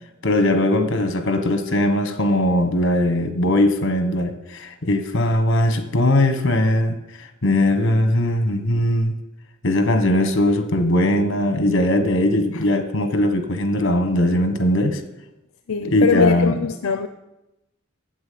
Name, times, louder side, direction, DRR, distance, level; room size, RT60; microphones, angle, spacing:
voice 1, 0.2-9.1 9.6-15.0 15.8-16.5, left 1 dB, 60° left, 8 dB, 1.3 m, -20 dB
voice 2, 15.7-17.1, left 5 dB, 80° left, 9 dB, 0.6 m, -22 dB
9.0 x 7.9 x 8.6 m, 0.96 s
head